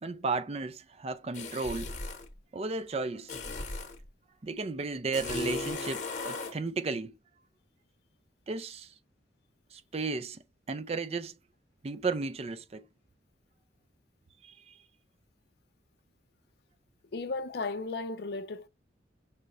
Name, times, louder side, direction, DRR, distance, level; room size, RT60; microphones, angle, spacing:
voice 1, 0.0-1.9 2.5-3.3 4.4-7.1 8.5-8.9 9.7-11.3 11.8-12.9 14.4-14.8, right 3 dB, 35° right, 0.4 m, -34 dB
sound 1, 1.3-2.3 3.3-4.0 5.1-6.6, left 3 dB, 45° left, 1.2 m, -36 dB
voice 2, 17.1-18.7, left 3 dB, 60° left, 0.5 m, -35 dB
5.6 x 2.5 x 3.0 m
head